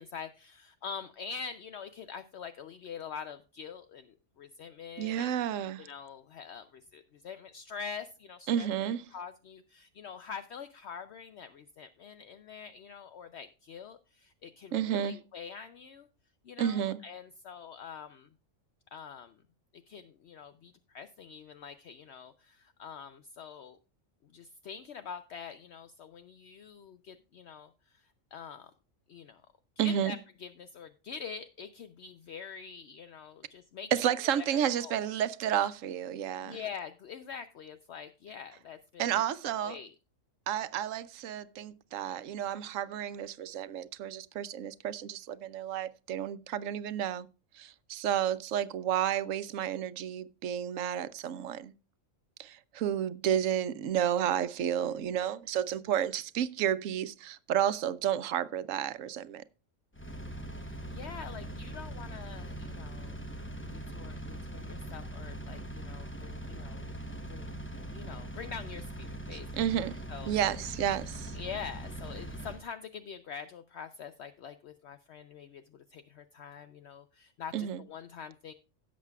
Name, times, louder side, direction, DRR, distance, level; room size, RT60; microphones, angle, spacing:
voice 1, 0.0-5.3 5.8-8.7 9.1-16.1 16.4-18.3 18.9-19.4 19.7-23.8 24.2-28.7 29.1-29.4 29.8-33.9 34.4-35.1 36.4-39.2 39.6-39.9 60.5-63.3 63.7-66.9 67.3-69.5 70.1-70.6 71.3-78.5, left 6 dB, 65° left, 0.8 m, -45 dB
voice 2, 5.0-5.9 8.5-9.0 14.7-15.2 16.6-17.0 29.8-30.1 33.9-36.6 39.0-39.7 40.5-47.3 47.6-51.7 52.4-59.4 69.6-70.0 70.3-71.4 77.5-77.8, right 10 dB, 80° right, 1.0 m, -31 dB
Engine, 59.9-72.6, right 1 dB, 10° left, 0.7 m, -41 dB
16.5 x 7.4 x 2.3 m
omnidirectional pair, 1.3 m